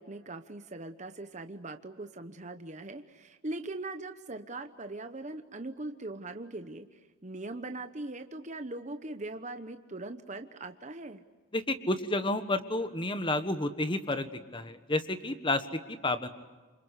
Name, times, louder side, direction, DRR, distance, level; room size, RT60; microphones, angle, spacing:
voice 1, 0.0-11.2, right 2 dB, 35° right, 7 dB, 0.9 m, -41 dB
voice 2, 11.5-14.3 14.5-16.3, left 2 dB, 20° left, 10 dB, 1.4 m, -30 dB
28.0 x 25.0 x 8.2 m, 1.3 s
head